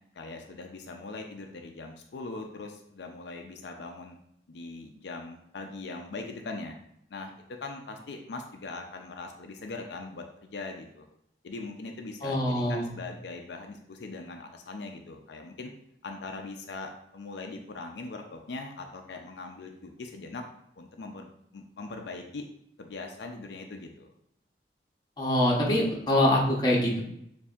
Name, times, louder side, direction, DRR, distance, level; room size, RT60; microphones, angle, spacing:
voice 1, 0.1-4.2 4.5-6.8 7.1-7.3 7.6-11.1 11.4-15.7 16.0-20.4 20.8-22.5 22.8-24.1, left 3 dB, 80° left, 3 dB, 0.5 m, -41 dB
voice 2, 12.2-12.9 25.2-27.0, left 1 dB, 25° left, -3 dB, 0.9 m, -24 dB
6.8 x 2.7 x 2.4 m, 0.74 s
head